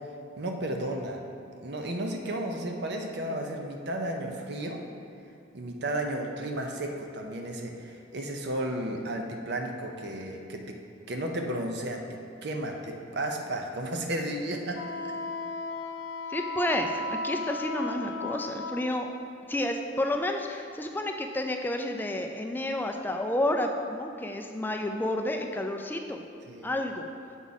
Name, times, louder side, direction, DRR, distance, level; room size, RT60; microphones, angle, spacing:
voice 1, 0.4-1.2 1.6-4.8 5.5-10.8 11.1-15.1 26.5-26.7, right 1 dB, 60° right, 3 dB, 0.7 m, -33 dB
Wind instrument woodwind instrument, 14.7-18.9, left 2 dB, 75° left, 0.5 m, -35 dB
voice 2, 16.3-19.1 19.5-26.2 26.6-27.1, left 1 dB, 10° left, 4 dB, 0.3 m, -30 dB
7.1 x 4.7 x 4.1 m, 2.6 s
head